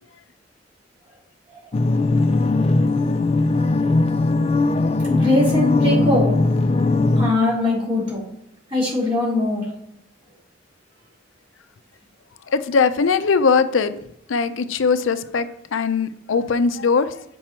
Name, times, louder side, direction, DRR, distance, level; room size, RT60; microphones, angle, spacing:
sound 1, 1.7-7.3, left 2 dB, 30° left, 0.4 m, -19 dB
voice 1, 5.1-6.4 7.1-8.2 8.7-9.7, left 2 dB, 30° right, -6 dB, 3.4 m, -21 dB
voice 2, 12.5-14.0 14.3-17.2, left 5 dB, 90° left, 11 dB, 0.5 m, -20 dB
7.5 x 5.4 x 4.4 m, 0.77 s
head